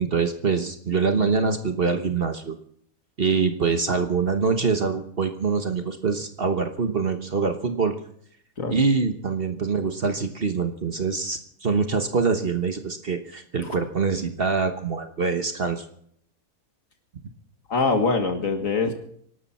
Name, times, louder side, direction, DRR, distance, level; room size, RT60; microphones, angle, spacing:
voice 1, 0.0-2.5 3.2-8.0 8.7-15.8, right 5 dB, 40° right, 7 dB, 1.2 m, -24 dB
voice 2, 17.7-18.9, left 4 dB, 55° left, 5 dB, 2.0 m, -23 dB
25.0 x 12.0 x 4.3 m, 0.66 s
omnidirectional pair, 1.7 m